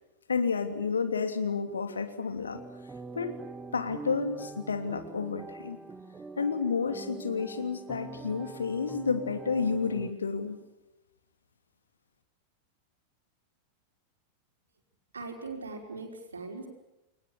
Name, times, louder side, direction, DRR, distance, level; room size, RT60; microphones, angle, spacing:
voice 1, 0.3-2.6 3.1-3.4 3.7-5.8 6.4-10.6, left 5 dB, 70° left, 7 dB, 2.8 m, -30 dB
sound 1, 2.5-10.1, right 3 dB, 15° right, 1.6 m, -44 dB
voice 2, 15.1-16.7, right 3 dB, 75° right, 3 dB, 5.3 m, -40 dB
30.0 x 21.0 x 7.2 m, 0.96 s
figure-of-eight pair, 90°, 0 cm